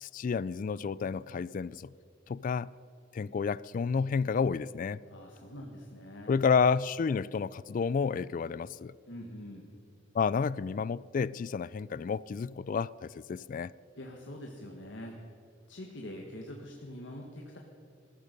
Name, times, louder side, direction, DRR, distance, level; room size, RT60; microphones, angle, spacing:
voice 1, 0.0-1.9 2.3-2.7 3.1-5.0 6.3-8.9 10.1-13.7, left 5 dB, 45° left, 0.3 m, -30 dB
voice 2, 5.1-6.5 9.1-9.7 14.0-15.1 15.7-17.6, left 1 dB, 65° left, 1.6 m, -44 dB
20.0 x 14.0 x 5.3 m
head